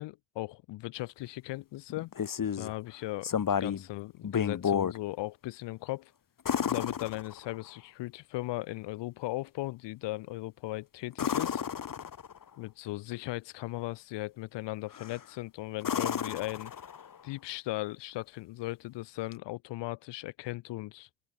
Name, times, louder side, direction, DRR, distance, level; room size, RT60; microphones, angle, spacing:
voice 1, 0.0-2.1 2.6-6.1 6.6-11.6 12.6-16.7 17.2-21.3, left 18 dB, 75° left, 3.6 m, -38 dB
sound 1, 1.9-2.7 3.2-3.9 4.2-5.0 6.4-7.7 11.1-12.4 14.9-15.3 15.8-17.2 19.3-19.4, left 8 dB, 50° left, 6.3 m, -32 dB
hypercardioid pair, 55°, 43 cm